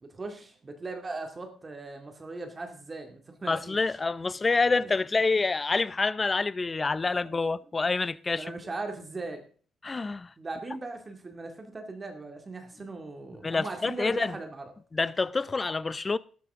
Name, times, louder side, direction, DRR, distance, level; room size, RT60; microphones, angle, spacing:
voice 1, 0.0-4.0 7.3-7.4 8.3-9.4 10.4-14.7, right 3 dB, 30° right, 2.1 m, -39 dB
voice 2, 3.5-8.5 9.8-10.3 13.4-14.4 14.9-16.2, left 3 dB, 25° left, 0.5 m, -27 dB
12.5 x 12.5 x 3.6 m
cardioid pair, 90°, 0 cm